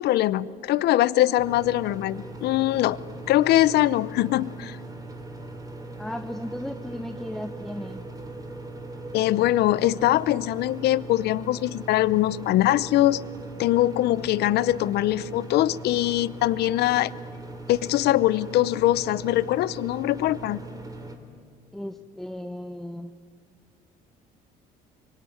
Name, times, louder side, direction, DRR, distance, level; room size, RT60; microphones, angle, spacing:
voice 1, 0.0-3.0 3.3-4.8 9.1-13.2 13.6-17.1 17.7-20.6, left 14 dB, 75° left, 19 dB, 0.7 m, -22 dB
sound 1, 1.4-21.2, right 2 dB, 20° right, 3.3 m, -40 dB
voice 2, 6.0-8.0 21.7-23.1, left 1 dB, ahead, 9 dB, 0.8 m, -35 dB
25.5 x 23.5 x 9.3 m, 2.2 s
cardioid pair, 110°, 17 cm